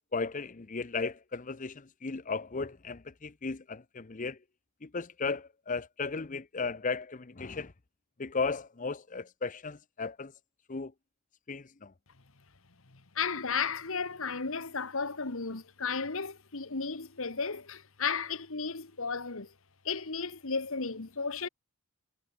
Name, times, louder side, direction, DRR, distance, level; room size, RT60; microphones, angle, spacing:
voice 1, 0.1-4.4 4.8-7.7 8.2-10.3 10.7-10.9 11.5-11.9, left 4 dB, 35° left, 0.7 m, -35 dB
voice 2, 12.9-19.5 19.8-21.5, left 5 dB, 65° left, 1.6 m, -34 dB
head